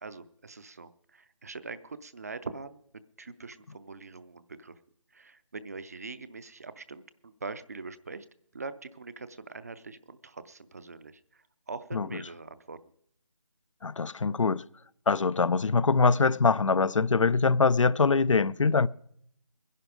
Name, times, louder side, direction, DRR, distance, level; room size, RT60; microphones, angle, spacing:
voice 1, 0.0-2.8 3.2-4.8 5.1-8.3 8.5-12.8, right 4 dB, 30° right, 0.5 m, -43 dB
voice 2, 13.8-14.6 15.1-18.9, left 4 dB, 70° left, 0.5 m, -23 dB
21.0 x 11.0 x 5.1 m
figure-of-eight pair, 160°, 17 cm